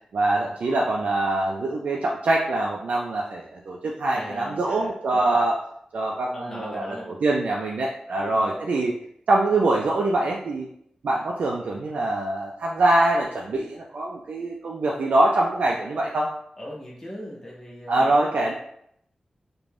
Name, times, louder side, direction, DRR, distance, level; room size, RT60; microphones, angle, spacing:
voice 1, 0.1-5.5 5.9-8.9 9.3-10.7 11.0-16.3 17.9-18.5, right 2 dB, 85° right, -2 dB, 0.3 m, -24 dB
voice 2, 4.1-5.4 6.3-7.1 8.2-8.7 16.6-18.1, equal, 15° left, -6 dB, 0.5 m, -39 dB
2.5 x 2.2 x 3.2 m, 0.70 s
wide cardioid pair, 135°, 2 cm